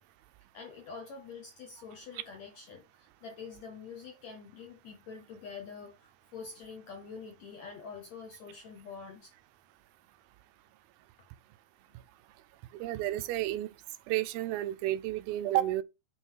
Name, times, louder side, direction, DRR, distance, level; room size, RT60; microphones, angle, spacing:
voice 1, 0.5-9.3, left 5 dB, 75° left, 1.6 m, -46 dB
voice 2, 12.7-13.7 14.1-15.8, right 14 dB, 80° right, 2.4 m, -31 dB
9.0 x 3.5 x 4.6 m
omnidirectional pair, 4.3 m